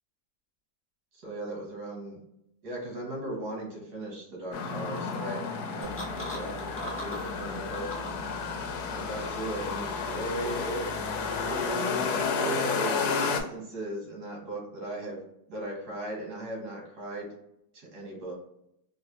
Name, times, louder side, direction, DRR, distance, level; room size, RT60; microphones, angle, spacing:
voice 1, 1.2-2.2 2.6-5.4 5.7-8.2 8.9-10.8 11.4-15.2 15.5-17.3 17.7-18.3, right 1 dB, 80° right, -1 dB, 1.8 m, -37 dB
sound 1, 4.5-13.4, left 5 dB, 80° left, 1.1 m, -31 dB
sound 2, 5.8-12.4, left 1 dB, 15° left, 0.4 m, -44 dB
4.0 x 2.4 x 2.9 m, 0.81 s
omnidirectional pair, 1.7 m